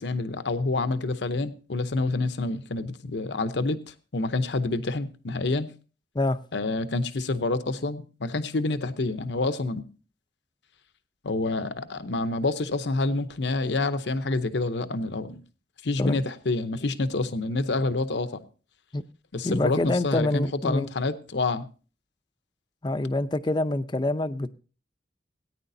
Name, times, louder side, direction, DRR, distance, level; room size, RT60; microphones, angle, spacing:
voice 1, 0.0-5.7 6.5-9.8 11.2-15.4 15.8-18.4 19.3-21.7, left 2 dB, 70° left, 0.8 m, -28 dB
voice 2, 19.4-20.9 22.8-24.5, left 2 dB, 25° left, 0.5 m, -26 dB
18.0 x 9.8 x 2.7 m
head